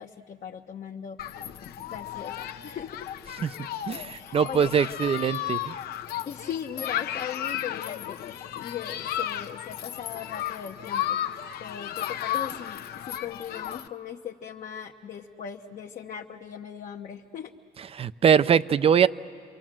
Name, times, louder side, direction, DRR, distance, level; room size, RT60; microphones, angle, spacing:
voice 1, 0.0-3.1 4.1-4.7 6.3-17.5, left 8 dB, 50° left, 1 dB, 0.9 m, -39 dB
Human group actions, 1.2-13.9, left 11 dB, 70° left, 0.8 m, -34 dB
voice 2, 3.9-5.7 17.9-19.1, right 7 dB, 35° right, 16 dB, 0.5 m, -22 dB
28.5 x 23.5 x 7.5 m, 2.3 s
cardioid pair, 110°, 17 cm